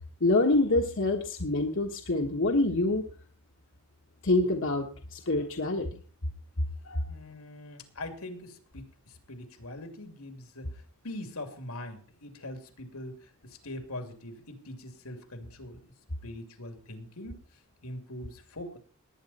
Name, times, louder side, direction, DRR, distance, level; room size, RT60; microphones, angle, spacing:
voice 1, 0.2-3.1 4.2-5.8 6.8-7.0, left 2 dB, 60° left, 2 dB, 1.4 m, -26 dB
voice 2, 7.1-15.9 16.2-17.4 17.8-18.8, left 1 dB, 85° left, 6 dB, 2.8 m, -42 dB
19.0 x 9.7 x 4.2 m, 0.39 s
head